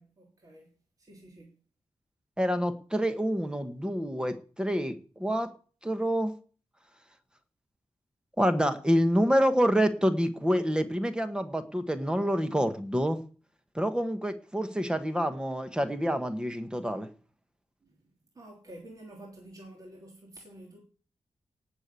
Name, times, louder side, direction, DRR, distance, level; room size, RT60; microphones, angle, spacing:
voice 1, 0.0-1.6 14.6-14.8 17.8-18.1 18.3-20.8, right 1 dB, 35° right, 3.3 m, -50 dB
voice 2, 2.4-5.5 5.8-6.3 8.4-13.2 13.7-17.1, equal, 10° right, 1.3 m, -27 dB
18.0 x 6.8 x 8.3 m
wide cardioid pair, 170°, 11 cm